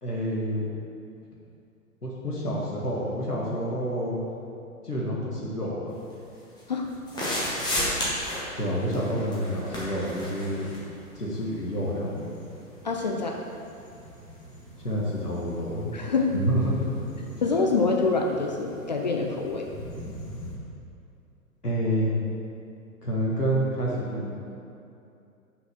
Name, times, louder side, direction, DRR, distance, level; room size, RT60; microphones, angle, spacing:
voice 1, 0.0-0.6 2.0-4.2 4.8-5.9 8.6-10.7 11.1-12.3 14.8-15.9 16.3-16.9 21.6-22.1 23.0-24.3, equal, 85° left, -5 dB, 1.6 m, -28 dB
sound 1, 5.9-20.6, left 1 dB, 10° left, 1.3 m, -37 dB
voice 2, 12.8-13.4 15.9-16.3 17.4-19.6, left 4 dB, 30° left, 1 dB, 0.4 m, -25 dB
6.2 x 5.0 x 5.6 m, 2.6 s
figure-of-eight pair, 110°, 45 cm